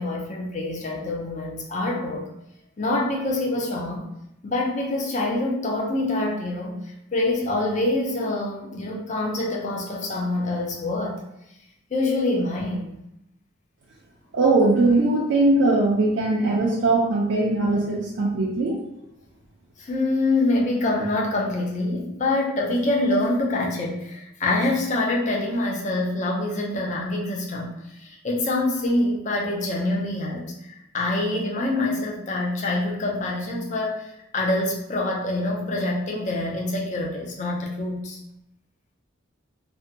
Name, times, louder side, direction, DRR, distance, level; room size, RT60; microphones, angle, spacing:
voice 1, 0.0-2.3 2.8-4.1 4.4-11.2 11.9-13.0 19.8-38.2, left 2 dB, 35° left, -2 dB, 0.4 m, -25 dB
voice 2, 14.3-18.8, right 2 dB, 60° right, -3 dB, 0.4 m, -20 dB
2.6 x 2.1 x 2.6 m, 0.84 s
head